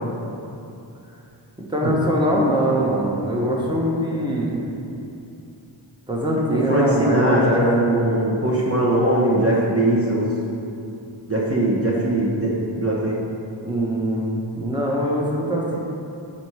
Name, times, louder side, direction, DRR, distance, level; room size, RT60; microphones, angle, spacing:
voice 1, 1.7-4.6 6.1-7.6 13.6-15.8, equal, 10° right, -3 dB, 1.2 m, -22 dB
voice 2, 6.5-10.3 11.3-13.2, right 1 dB, 30° right, -5 dB, 1.1 m, -20 dB
7.3 x 4.3 x 4.8 m, 2.7 s
wide cardioid pair, 45°, 47 cm